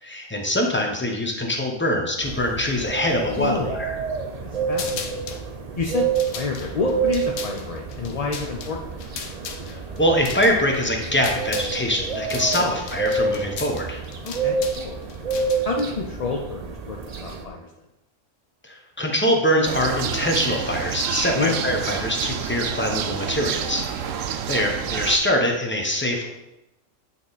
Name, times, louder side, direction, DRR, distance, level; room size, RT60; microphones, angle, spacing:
voice 1, 0.0-4.0 9.7-14.0 18.6-26.3, equal, 10° left, 1 dB, 0.8 m, -24 dB
sound 1, 2.2-17.5, right 5 dB, 45° right, 0.5 m, -29 dB
voice 2, 3.4-3.8 4.4-5.2 5.8-8.9 12.4-12.8 14.2-15.0 15.6-17.7 21.3-21.6 24.0-24.2, left 4 dB, 45° left, 0 dB, 0.5 m, -29 dB
sound 2, 4.7-5.4 6.0-11.8 12.0-15.8, left 6 dB, 80° left, 1.0 m, -36 dB
sound 3, 19.6-25.2, right 8 dB, 85° right, 0.9 m, -28 dB
8.5 x 3.7 x 4.1 m, 0.92 s
omnidirectional pair, 1.3 m